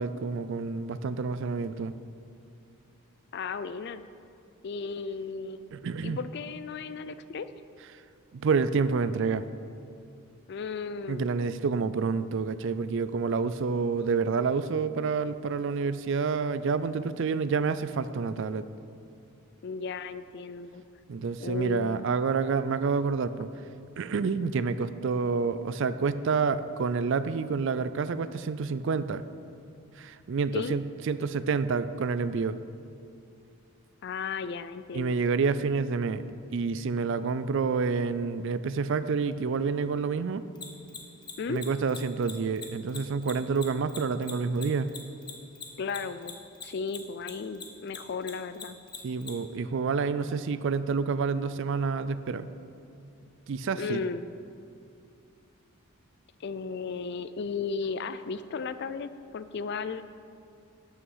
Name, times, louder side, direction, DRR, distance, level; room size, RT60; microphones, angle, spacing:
voice 1, 0.0-1.9 5.7-6.2 8.3-9.4 11.1-18.7 21.1-23.5 24.0-29.2 30.0-32.6 34.9-36.2 36.5-40.4 41.5-44.9 49.0-52.5 53.5-54.0, right 5 dB, 55° right, 13 dB, 0.4 m, -28 dB
voice 2, 3.3-4.0 4.6-5.7 6.0-7.5 10.5-11.3 19.6-20.8 21.4-22.1 30.5-30.7 34.0-35.2 41.4-41.6 45.8-46.4 46.6-48.8 53.7-54.3 56.4-60.0, left 5 dB, 50° left, 13 dB, 0.3 m, -35 dB
Mechanisms, 40.6-47.3 47.6-49.3, left 6 dB, 20° left, 0.8 m, -40 dB
12.5 x 5.7 x 5.6 m, 2.5 s
head